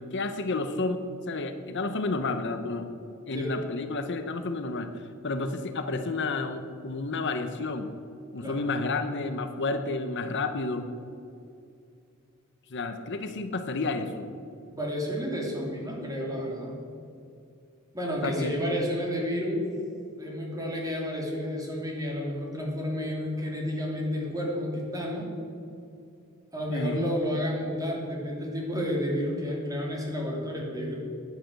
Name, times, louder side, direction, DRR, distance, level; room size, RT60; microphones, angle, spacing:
voice 1, 0.0-2.9 3.3-7.9 8.3-10.9 12.7-14.3 18.2-18.5 26.7-27.1, left 3 dB, 55° left, 8 dB, 0.8 m, -31 dB
voice 2, 14.7-16.8 17.9-19.7 20.2-25.3 26.5-31.0, equal, 15° right, -2 dB, 3.0 m, -31 dB
10.5 x 10.0 x 8.2 m, 2.5 s
head